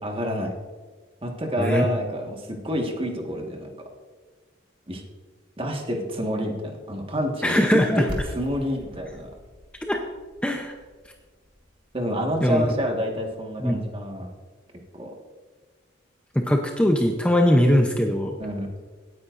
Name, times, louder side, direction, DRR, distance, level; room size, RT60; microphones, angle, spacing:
voice 1, 0.0-0.5 1.2-3.7 4.9-5.0 5.6-9.3 11.9-14.3 14.9-15.1 18.4-18.7, equal, 30° right, 2 dB, 1.6 m, -28 dB
voice 2, 7.4-8.0 9.8-10.0 10.4-10.7 12.4-12.7 13.6-13.9 16.3-18.4, equal, 5° left, 2 dB, 0.6 m, -21 dB
sound 1, 8.1-13.8, equal, 45° right, 2.4 m, -41 dB
17.0 x 9.6 x 2.6 m, 1.4 s
head